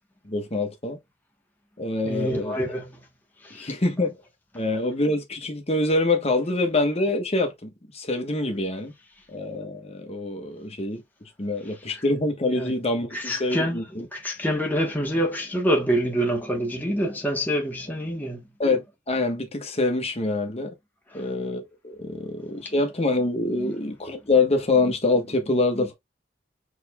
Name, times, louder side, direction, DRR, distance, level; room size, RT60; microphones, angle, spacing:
voice 1, 0.2-1.0 1.8-2.6 3.5-4.2 4.5-8.9 9.3-14.1 18.6-20.7 21.1-25.9, left 2 dB, 35° left, 1.2 m, -25 dB
voice 2, 2.0-3.0 3.4-3.7 11.9-12.0 12.5-12.7 13.1-18.4 21.1-21.2 23.6-23.7, equal, 10° left, 1.1 m, -26 dB
6.5 x 3.3 x 2.3 m
head